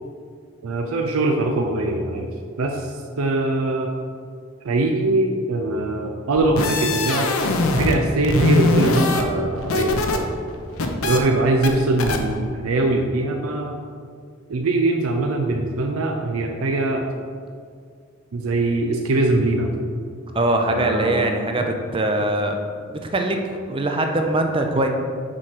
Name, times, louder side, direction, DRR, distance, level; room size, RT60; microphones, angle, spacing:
voice 1, 0.6-2.3 2.6-3.9 4.6-7.4 7.8-10.3 11.0-13.8 14.5-17.1 18.3-19.7 20.7-21.3, right 2 dB, 85° right, 3 dB, 0.5 m, -22 dB
sound 1, 6.3-8.0 8.2-10.2 10.5-11.2 11.6-11.7 12.0-12.2, left 2 dB, 80° left, 0.7 m, -21 dB
voice 2, 20.3-22.6 22.9-23.4 23.7-24.9, right 2 dB, 25° right, 4 dB, 0.4 m, -22 dB
6.1 x 4.5 x 4.8 m, 2.2 s
head